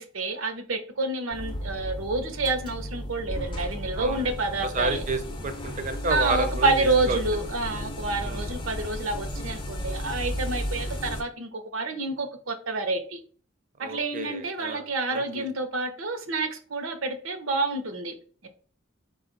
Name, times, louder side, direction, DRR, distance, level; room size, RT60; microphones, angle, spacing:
voice 1, 0.0-5.0 6.1-13.2 13.8-18.1 18.4-18.5, right 3 dB, 85° right, 0.8 m, -28 dB
sound 1, 1.3-11.2, equal, 25° left, 0.6 m, -34 dB
voice 2, 4.0-4.3 4.6-7.2 8.2-8.5 13.8-15.5, right 2 dB, 40° right, 0.5 m, -31 dB
4.8 x 2.4 x 3.9 m
head